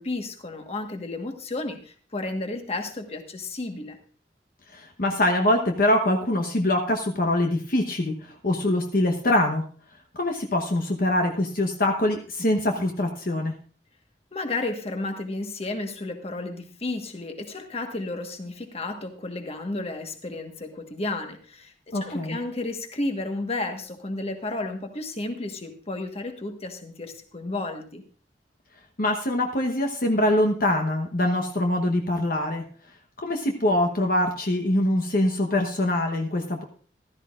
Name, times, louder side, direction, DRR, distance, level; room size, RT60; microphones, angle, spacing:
voice 1, 0.0-4.0 14.3-28.0, left 2 dB, 35° left, 5 dB, 1.4 m, -32 dB
voice 2, 4.7-9.6 10.1-13.5 21.9-22.4 29.0-32.6 33.2-36.6, left 1 dB, 55° left, 3 dB, 1.1 m, -24 dB
14.5 x 13.5 x 2.5 m, 0.43 s
head